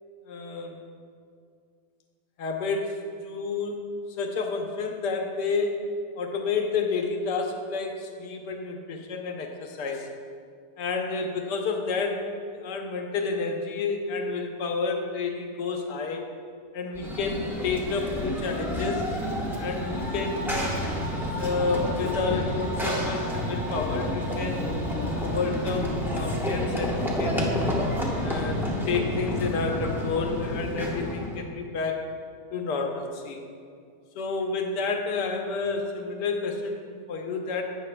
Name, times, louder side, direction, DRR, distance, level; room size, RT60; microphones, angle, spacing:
voice 1, 0.3-0.8 2.4-3.8 4.1-5.9 6.2-10.1 10.8-16.2 16.7-19.0 19.6-20.6 21.4-24.7 25.2-27.5 28.2-32.1 32.5-33.4 34.1-37.6, left 4 dB, 80° left, 3 dB, 1.4 m, -30 dB
Run / Train, 16.9-31.4, left 1 dB, ahead, 0.7 m, -29 dB
12.0 x 8.7 x 2.2 m, 2.3 s
omnidirectional pair, 1.8 m